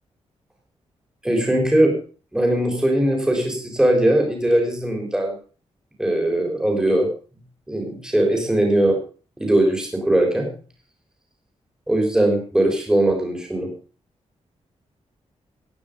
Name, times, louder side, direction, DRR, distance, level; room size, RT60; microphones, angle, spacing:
voice 1, 1.2-1.9 2.3-5.3 6.0-7.1 7.7-9.0 9.4-10.5 11.9-13.7, right 1 dB, 5° right, 2 dB, 4.1 m, -20 dB
17.5 x 10.0 x 5.3 m, 0.39 s
wide cardioid pair, 170°, 12 cm